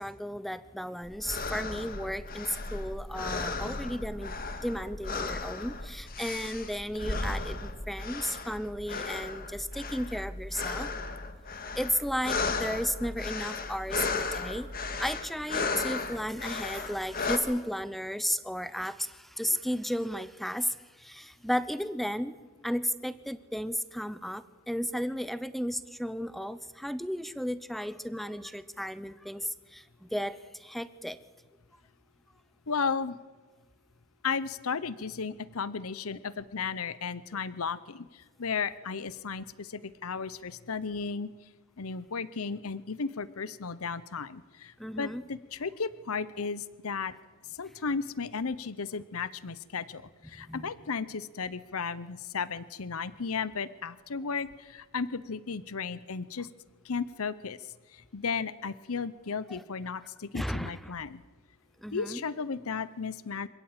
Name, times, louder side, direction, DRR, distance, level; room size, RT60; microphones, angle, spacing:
voice 1, 0.0-10.9 11.8-14.7 15.0-22.4 22.6-31.2 44.8-45.2 50.4-50.7 59.5-59.6 60.3-60.9 61.8-62.2, equal, ahead, 15 dB, 0.8 m, -34 dB
sound 1, 1.0-17.4, left 3 dB, 40° left, 1.9 m, -35 dB
voice 2, 32.7-33.2 34.2-38.1 38.4-41.3 41.8-44.7 45.0-47.1 47.6-56.5 56.8-57.6 58.1-61.2 61.9-63.5, left 5 dB, 75° left, 17 dB, 0.8 m, -34 dB
26.0 x 16.0 x 8.9 m, 1.3 s
head